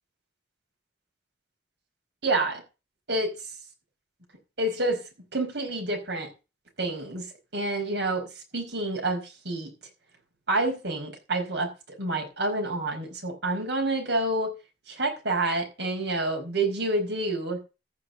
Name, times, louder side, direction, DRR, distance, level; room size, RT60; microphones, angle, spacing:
voice 1, 2.2-2.6 3.1-3.3 4.6-5.0 5.3-6.3 6.8-7.2 7.5-8.2 8.5-9.7 10.5-11.7 12.0-14.5 14.9-17.6, right 2 dB, 75° right, 4.9 m, -28 dB
15.0 x 5.8 x 5.7 m
head